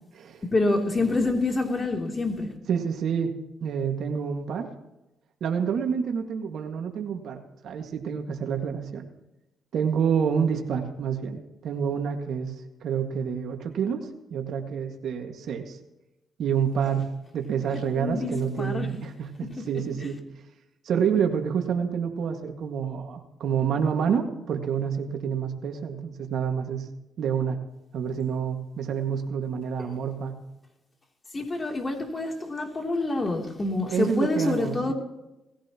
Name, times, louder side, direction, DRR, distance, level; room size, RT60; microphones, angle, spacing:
voice 1, 0.4-2.6 17.7-18.9 20.0-20.1 31.3-34.9, left 2 dB, 30° left, 1 dB, 3.2 m, -27 dB
voice 2, 2.7-3.3 3.6-4.7 5.4-9.1 9.7-12.5 12.8-15.8 16.4-17.1 17.3-20.2 20.9-26.9 27.2-27.6 27.9-30.4 33.9-34.9, right 7 dB, 70° right, 3 dB, 2.0 m, -28 dB
19.5 x 15.5 x 3.1 m, 0.95 s
cardioid pair, 90°, 0 cm